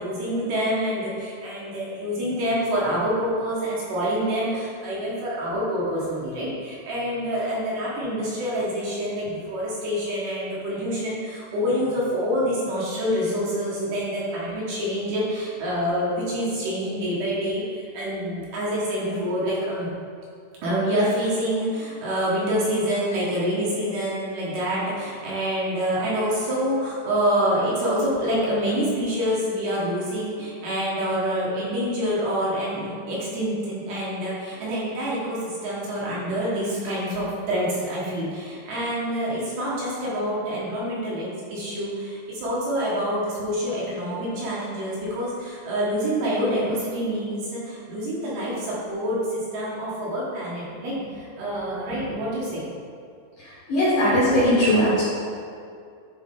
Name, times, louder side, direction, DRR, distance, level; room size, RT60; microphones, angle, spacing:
voice 1, 0.0-19.9 20.6-52.6, equal, 65° right, -7 dB, 3.0 m, -26 dB
voice 2, 53.4-55.0, equal, 60° left, -9 dB, 2.4 m, -20 dB
11.0 x 4.4 x 3.7 m, 2.4 s
omnidirectional pair, 5.2 m